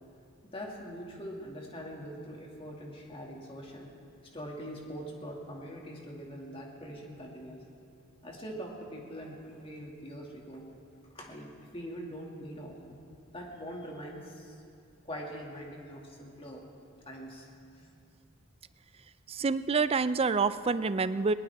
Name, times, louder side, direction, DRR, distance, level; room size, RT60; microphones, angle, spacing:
voice 1, 0.4-3.9 4.3-7.6 8.2-10.7 11.1-13.0 13.3-14.6 15.0-16.6 17.1-17.9, equal, 25° left, -1 dB, 2.3 m, -43 dB
voice 2, 19.3-21.3, right 4 dB, 30° right, 14 dB, 0.4 m, -27 dB
21.5 x 19.0 x 3.6 m, 2.6 s
head